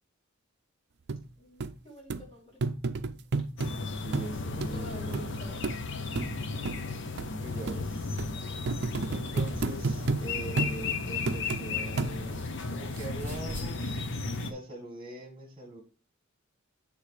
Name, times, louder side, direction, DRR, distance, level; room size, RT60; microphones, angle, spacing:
sound 1, 1.1-1.2 1.6-1.7 2.1-2.2 2.6-3.7 4.1-4.3 4.6-4.7 5.1-5.3 5.6-5.8 6.2-6.3 6.6-6.8 7.2-7.3 7.7-7.8 8.2-8.3 8.7-10.2 10.6-10.8 11.3-11.6 12.0-12.4 13.0-13.1, right 3 dB, 55° right, 0.5 m, -30 dB
voice 1, 1.4-2.6 4.5-5.6, left 1 dB, 25° left, -3 dB, 3.9 m, -48 dB
sound 2, 3.6-14.5, left 4 dB, 60° left, 0.8 m, -35 dB
voice 2, 4.0-5.4 7.4-8.2 9.1-14.0 14.5-15.8, right 2 dB, 25° right, 2 dB, 1.9 m, -42 dB
sound 3, 9.1-12.5 12.8-13.7, equal, 10° left, 2.3 m, -44 dB
8.3 x 3.5 x 4.9 m, 0.37 s
head